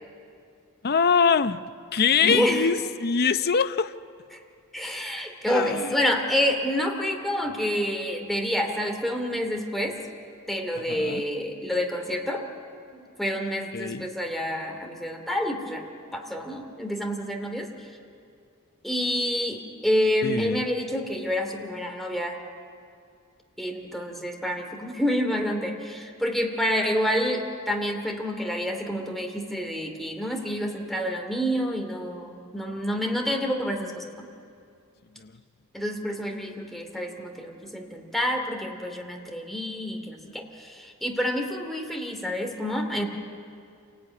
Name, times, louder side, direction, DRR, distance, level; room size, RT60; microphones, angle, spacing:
voice 1, 0.8-1.6 1.9-3.9 5.5-6.0 10.9-11.3 13.7-14.1 20.2-20.6 35.2-35.3, left 6 dB, 45° left, 11 dB, 0.7 m, -23 dB
voice 2, 2.2-2.7 4.3-4.4 4.7-10.0 10.5-12.5 12.9-15.8 16.1-17.7 18.8-22.4 23.6-34.3 35.7-43.1, equal, ahead, 2 dB, 2.6 m, -28 dB
27.5 x 18.0 x 9.8 m, 2.4 s
head